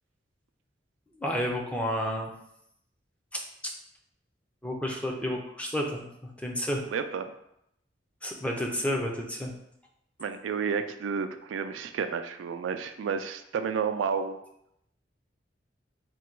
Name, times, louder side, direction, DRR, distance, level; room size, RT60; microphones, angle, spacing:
voice 1, 1.2-2.3 3.3-3.7 4.6-6.8 8.2-9.5, equal, 5° left, 0 dB, 0.5 m, -31 dB
voice 2, 6.9-7.3 10.2-14.4, right 6 dB, 90° right, 8 dB, 0.3 m, -31 dB
3.8 x 2.2 x 4.4 m, 0.78 s
head